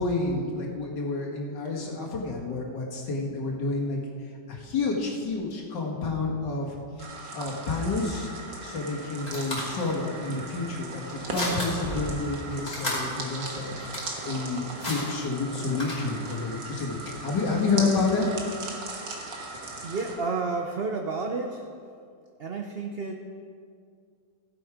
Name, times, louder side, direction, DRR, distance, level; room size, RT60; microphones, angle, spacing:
voice 1, 0.0-4.0 4.5-7.1 7.3-8.3 8.6-13.7 14.3-18.3, left 3 dB, 75° left, -2 dB, 2.4 m, -29 dB
sound 1, 7.0-20.2, right 2 dB, 80° right, 2.1 m, -38 dB
sound 2, 8.7-16.4, left 1 dB, 20° left, 3.0 m, -36 dB
voice 2, 19.8-21.7 22.4-23.2, right 4 dB, 55° right, 3 dB, 0.6 m, -31 dB
16.0 x 7.9 x 5.0 m, 2.3 s
omnidirectional pair, 1.9 m